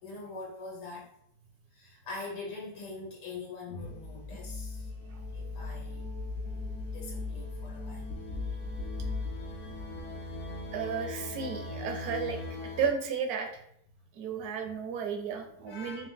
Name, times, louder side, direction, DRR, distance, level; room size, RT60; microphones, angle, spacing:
voice 1, 0.0-1.1 1.7-4.9 5.3-6.1 6.9-8.1 15.7-16.1, left 3 dB, 85° left, -2 dB, 1.4 m, -43 dB
sound 1, 3.8-12.9, left 2 dB, 60° left, 0.9 m, -38 dB
voice 2, 10.7-12.4 12.8-13.6 14.1-16.1, right 6 dB, 70° right, 5 dB, 1.1 m, -33 dB
4.3 x 2.5 x 3.5 m, 0.70 s
omnidirectional pair, 1.7 m